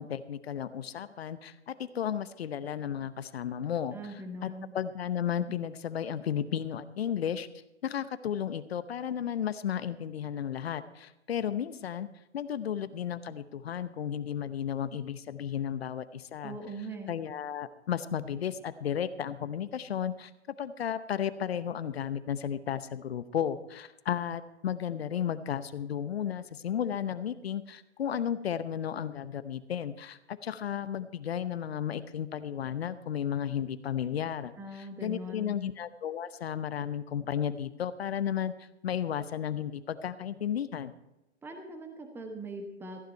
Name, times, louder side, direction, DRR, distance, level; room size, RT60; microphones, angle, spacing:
voice 1, 0.0-3.9 4.4-7.5 7.8-12.1 12.3-16.6 17.1-20.3 20.6-38.5 38.8-40.9, left 9 dB, 60° left, 14 dB, 0.9 m, -33 dB
voice 2, 3.9-4.7 16.4-17.2 34.6-35.6 41.4-43.0, right 1 dB, 5° right, 5 dB, 1.1 m, -41 dB
14.5 x 10.5 x 4.5 m, 0.96 s
figure-of-eight pair, 120°, 35 cm